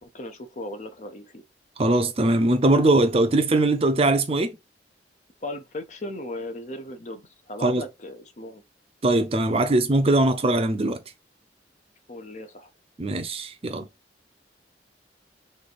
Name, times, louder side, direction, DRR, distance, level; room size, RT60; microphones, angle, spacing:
voice 1, 0.0-1.4 5.4-8.6 12.1-12.7, left 1 dB, 40° left, 0.7 m, -37 dB
voice 2, 1.8-4.6 7.6-7.8 9.0-11.0 13.0-13.9, right 2 dB, 35° right, 0.5 m, -21 dB
3.4 x 3.3 x 4.0 m
head